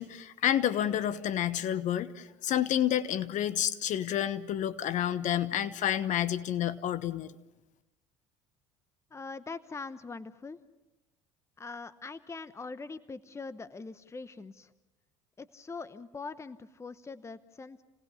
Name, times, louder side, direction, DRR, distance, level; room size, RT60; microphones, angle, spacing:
voice 1, 0.0-7.3, left 11 dB, 55° left, 13 dB, 1.2 m, -29 dB
voice 2, 9.1-10.6 11.6-14.7 15.4-17.8, left 4 dB, 20° left, 14 dB, 0.9 m, -42 dB
29.5 x 19.0 x 5.6 m, 1.0 s
hypercardioid pair, 70°, 15 cm